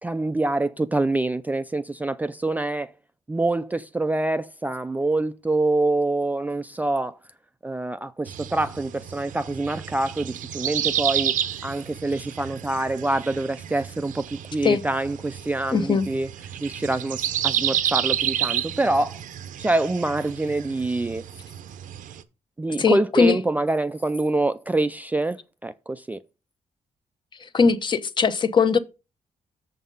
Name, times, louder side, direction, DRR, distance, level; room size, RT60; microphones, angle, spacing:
voice 1, 0.0-2.9 3.3-7.2 7.6-11.4 11.6-16.3 16.6-19.2 19.6-21.2 22.6-26.2, right 2 dB, 10° right, 0.3 m, -25 dB
sound 1, 8.3-22.2, right 10 dB, 85° right, 0.7 m, -30 dB
voice 2, 15.7-16.1 22.8-23.4 27.4-28.8, left 5 dB, 35° left, 0.8 m, -20 dB
7.2 x 5.7 x 5.4 m
cardioid pair, 135°, 13 cm